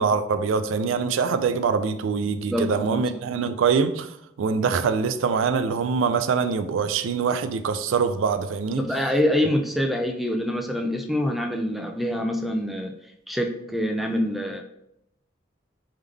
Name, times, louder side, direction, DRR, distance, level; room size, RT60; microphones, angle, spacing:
voice 1, 0.0-4.1 4.4-8.8, right 5 dB, 85° right, 0.3 m, -24 dB
voice 2, 2.5-3.2 8.7-12.9 13.3-14.6, left 1 dB, ahead, 0.3 m, -25 dB
3.6 x 3.4 x 3.3 m
head